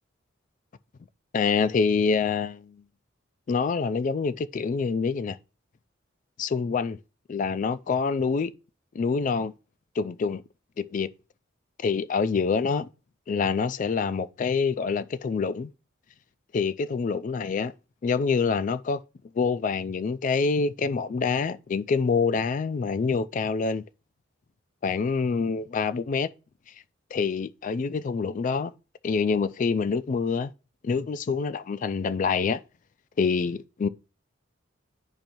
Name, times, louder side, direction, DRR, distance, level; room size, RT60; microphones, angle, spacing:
voice 1, 1.3-2.8 3.5-5.4 6.4-7.0 7.3-8.5 8.9-9.5 10.0-10.4 10.8-11.1 11.8-12.9 13.3-15.7 16.5-17.7 18.0-19.0 19.4-23.8 24.8-26.3 27.1-28.7 29.0-30.5 30.8-32.6 33.2-33.9, left 5 dB, 40° left, 0.3 m, -26 dB
10.5 x 4.4 x 2.6 m
head